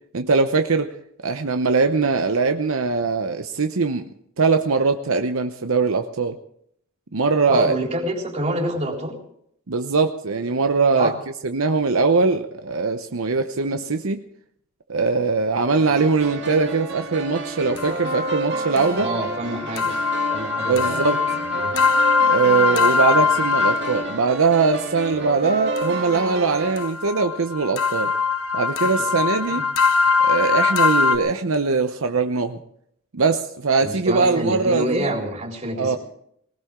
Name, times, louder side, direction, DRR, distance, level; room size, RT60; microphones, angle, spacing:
voice 1, 0.1-0.9 1.2-4.1 4.4-6.4 7.1-7.7 9.7-11.1 11.4-14.2 14.9-19.1 20.7-21.2 22.3-28.1 28.5-29.7 30.2-32.6 33.1-35.1 35.8-36.0, right 4 dB, 75° right, 7 dB, 0.8 m, -21 dB
voice 2, 7.5-9.2 10.9-11.2 13.7-13.8 18.9-19.9 20.3-21.8 28.8-29.6 33.8-36.0, right 1 dB, 35° right, 0 dB, 3.8 m, -28 dB
sound 1, 15.8-26.8, right 2 dB, 55° right, 2.4 m, -30 dB
sound 2, 17.8-24.2 25.8-31.2, left 5 dB, 85° left, 1.1 m, -22 dB
20.0 x 18.5 x 3.7 m, 0.70 s
head